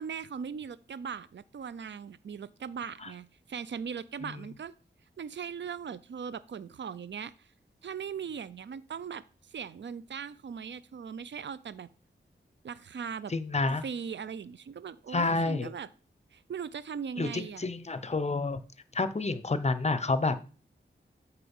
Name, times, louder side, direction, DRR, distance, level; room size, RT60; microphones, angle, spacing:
voice 1, 0.0-4.7 5.2-7.5 7.8-11.9 12.6-13.3 13.8-15.9 16.3-17.6, right 7 dB, 65° right, 17 dB, 0.5 m, -39 dB
voice 2, 13.3-13.8 15.1-15.7 17.2-18.6 18.9-20.4, left 3 dB, 35° left, 13 dB, 0.7 m, -29 dB
8.5 x 4.5 x 5.4 m, 0.37 s
wide cardioid pair, 80°, 20 cm